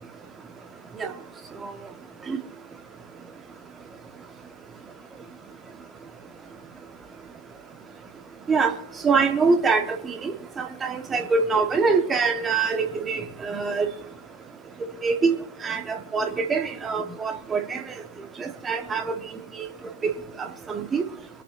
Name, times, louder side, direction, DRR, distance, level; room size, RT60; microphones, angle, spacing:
voice 1, 9.0-10.3 10.6-13.9 15.0-15.4 15.6-17.8 18.4-19.1 20.0-20.1 20.4-21.0, right 4 dB, 15° right, 6 dB, 1.0 m, -24 dB
24.0 x 8.8 x 2.5 m, 0.83 s
figure-of-eight pair, 100°, 0 cm